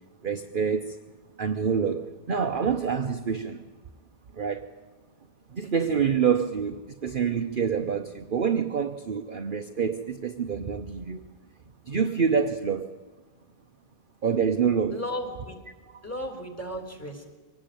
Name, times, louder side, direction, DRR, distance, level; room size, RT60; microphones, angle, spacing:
voice 1, 0.2-1.0 1.4-3.6 4.3-4.7 5.5-11.2 11.8-13.0 14.2-15.0, right 6 dB, 40° right, 7 dB, 0.8 m, -27 dB
voice 2, 14.9-15.6 16.0-17.3, equal, 10° left, 5 dB, 3.5 m, -35 dB
24.0 x 18.5 x 9.1 m, 1.3 s
omnidirectional pair, 1.9 m